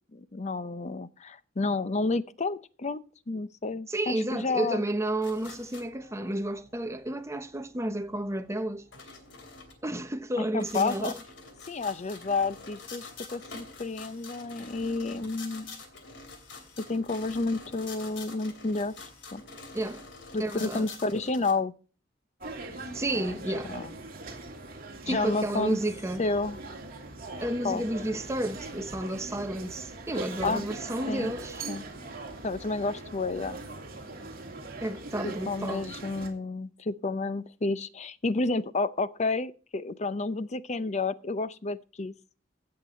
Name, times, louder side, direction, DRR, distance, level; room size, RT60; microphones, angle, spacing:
voice 1, 0.1-4.8 10.5-11.1 11.7-15.8 16.9-18.9 19.3-19.4 20.3-21.7 23.1-23.9 25.1-25.8 26.2-26.6 27.6-27.8 30.4-30.6 31.1-31.3 31.7-31.8 32.4-33.6 35.2-42.1, left 3 dB, 35° left, 0.6 m, -30 dB
voice 2, 3.9-8.8 9.8-11.2 19.7-20.0 20.4-20.9 22.9-23.7 25.1-26.3 27.4-31.7 34.8-35.9, right 1 dB, 15° right, 0.8 m, -31 dB
sound 1, 5.2-21.5, left 4 dB, 65° left, 3.0 m, -47 dB
sound 2, 22.4-36.3, right 3 dB, 50° right, 2.8 m, -41 dB
16.5 x 6.7 x 4.3 m
head